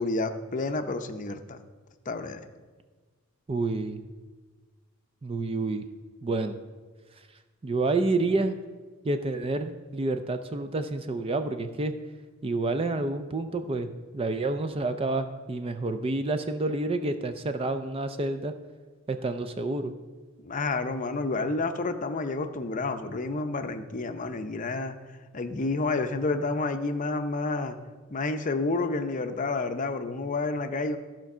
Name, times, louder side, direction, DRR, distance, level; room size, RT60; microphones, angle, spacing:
voice 1, 0.0-1.6 2.1-2.4 20.4-24.9 25.3-27.8 28.1-31.0, left 3 dB, 40° left, 7 dB, 0.6 m, -29 dB
voice 2, 3.5-4.1 5.2-5.8 6.2-6.6 7.6-8.6 9.0-11.9 12.4-13.9 14.1-18.5 19.1-19.9, right 2 dB, 25° right, 9 dB, 0.4 m, -29 dB
13.0 x 4.5 x 6.0 m, 1.4 s
head